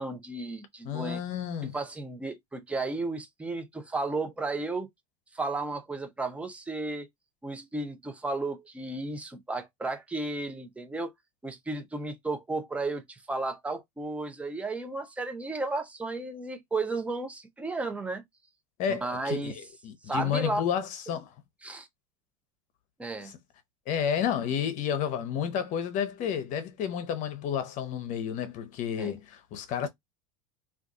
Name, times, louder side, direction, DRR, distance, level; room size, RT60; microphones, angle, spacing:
voice 1, 0.0-1.2 1.7-4.9 5.3-7.1 7.4-11.1 11.4-18.2 18.9-19.6 20.0-20.6 21.6-21.9 23.0-23.3 29.0-29.1, right 2 dB, 10° right, 0.6 m, -33 dB
voice 2, 0.8-1.7 18.8-19.5 19.8-21.3 23.9-29.9, left 8 dB, 50° left, 0.8 m, -31 dB
2.5 x 2.5 x 3.6 m
supercardioid pair, 110°, 17 cm